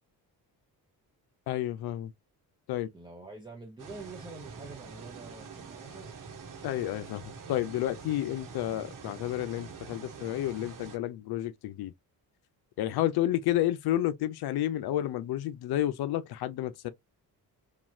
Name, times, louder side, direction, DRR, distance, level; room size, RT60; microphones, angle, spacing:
voice 1, 1.5-2.1 2.7-2.9 6.6-7.2 7.5-11.9 12.8-16.9, left 13 dB, 75° left, 0.6 m, -30 dB
voice 2, 2.9-6.2, right 3 dB, 10° right, 0.6 m, -46 dB
sound 1, 3.8-11.0, right 5 dB, 55° right, 1.1 m, -45 dB
3.0 x 2.4 x 2.5 m
cardioid pair, 140°, 38 cm